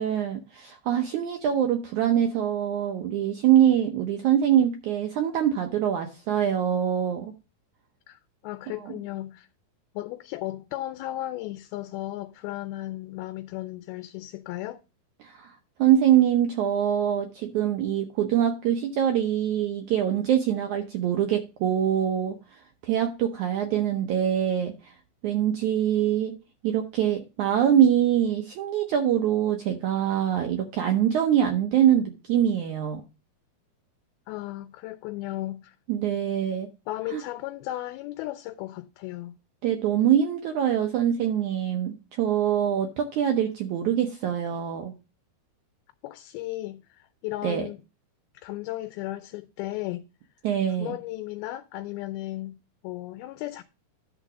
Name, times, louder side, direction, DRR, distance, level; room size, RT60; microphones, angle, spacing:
voice 1, 0.0-7.3 8.8-8.9 15.2-24.9 25.2-26.3 26.6-33.0 35.9-36.7 37.1-37.2 39.6-44.9 47.4-47.7 50.4-50.9, right 10 dB, 75° right, 1.8 m, -24 dB
voice 2, 8.1-9.5 10.0-14.8 34.3-35.8 36.9-39.3 46.0-47.8 48.3-50.0 50.8-52.6 52.8-53.6, left 16 dB, 85° left, 2.4 m, -35 dB
11.0 x 3.9 x 5.9 m
omnidirectional pair, 4.4 m